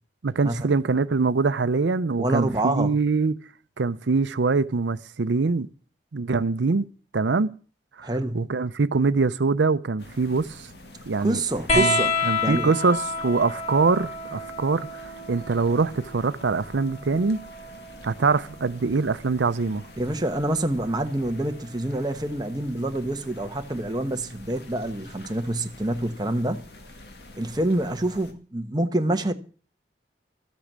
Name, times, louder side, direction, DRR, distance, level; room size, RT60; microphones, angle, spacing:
voice 1, 0.2-3.4 3.8-5.7 6.1-6.9 7.1-7.5 8.0-8.1 8.3-10.7 11.1-11.4 11.7-12.0 12.3-17.4 18.0-19.8, right 4 dB, 90° right, 0.6 m, -23 dB
voice 2, 2.2-2.9 8.0-8.4 11.2-12.1 12.4-12.7 20.0-26.6 27.4-29.3, right 1 dB, 25° right, 1.1 m, -26 dB
sound 1, 10.0-28.3, left 2 dB, 70° left, 2.2 m, -46 dB
sound 2, 11.7-18.8 20.1-21.0 22.3-22.4, left 3 dB, 35° left, 1.2 m, -30 dB
13.5 x 8.4 x 7.4 m
head